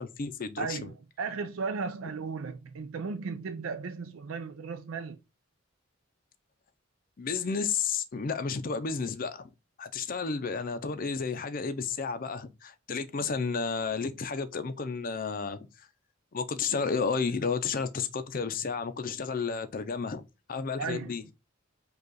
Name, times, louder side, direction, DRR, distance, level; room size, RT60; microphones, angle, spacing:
voice 1, 0.0-0.9 7.2-9.4 9.8-15.6 16.3-20.2 20.5-21.2, left 5 dB, 45° left, 0.5 m, -32 dB
voice 2, 0.6-5.2 20.8-21.1, right 4 dB, 90° right, 0.5 m, -35 dB
5.3 x 2.4 x 3.9 m
head